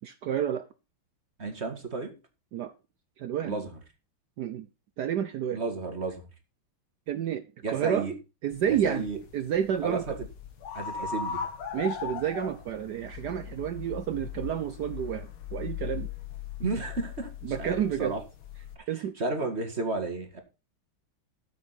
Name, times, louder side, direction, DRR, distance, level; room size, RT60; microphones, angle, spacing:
voice 1, 0.0-0.7 2.5-2.7 3.2-3.6 4.4-4.7 5.0-5.6 7.1-8.1 8.4-10.2 11.7-16.1 17.4-18.1 18.9-19.2, right 9 dB, 65° right, 1.1 m, -30 dB
voice 2, 1.4-2.1 3.4-3.8 5.5-6.3 7.6-8.1 8.7-9.2 9.8-10.1 10.7-11.4 16.6-17.3 17.6-18.2 18.9-20.4, right 3 dB, 30° right, 1.9 m, -32 dB
sound 1, 8.5-18.8, left 7 dB, 80° left, 2.3 m, -39 dB
13.0 x 7.5 x 4.2 m
omnidirectional pair, 2.3 m